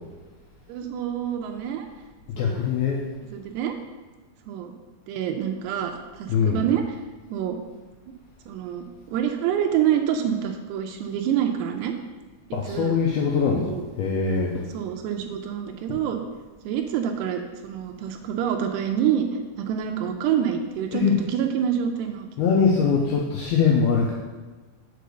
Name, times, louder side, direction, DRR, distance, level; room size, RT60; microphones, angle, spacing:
voice 1, 0.7-1.9 2.4-2.7 3.3-3.7 4.5-4.7 5.1-7.0 7.3-7.6 8.5-11.9 12.6-13.0 13.6-13.9 14.7-16.2 16.6-19.3 19.6-22.3, right 9 dB, 80° right, 4 dB, 2.5 m, -27 dB
voice 2, 2.4-3.0 6.3-6.6 12.5-14.7 15.9-16.0 20.9-21.1 22.4-24.1, left 6 dB, 85° left, -2 dB, 2.2 m, -22 dB
6.7 x 4.7 x 6.4 m, 1.2 s
omnidirectional pair, 5.3 m